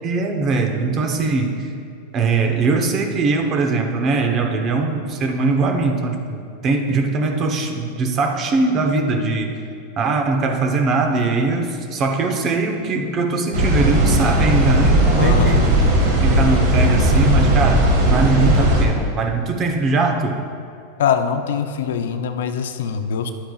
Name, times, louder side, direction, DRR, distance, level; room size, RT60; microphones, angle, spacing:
voice 1, 0.0-1.7 2.1-9.6 10.0-15.7 16.2-20.4, right 3 dB, 40° right, 4 dB, 1.0 m, -21 dB
sound 1, 13.5-18.8, right 1 dB, 70° right, 1.7 m, -16 dB
voice 2, 15.1-15.6 21.0-23.3, left 7 dB, 75° left, 8 dB, 0.5 m, -22 dB
11.0 x 8.7 x 2.4 m, 2.4 s
hypercardioid pair, 110°, 0 cm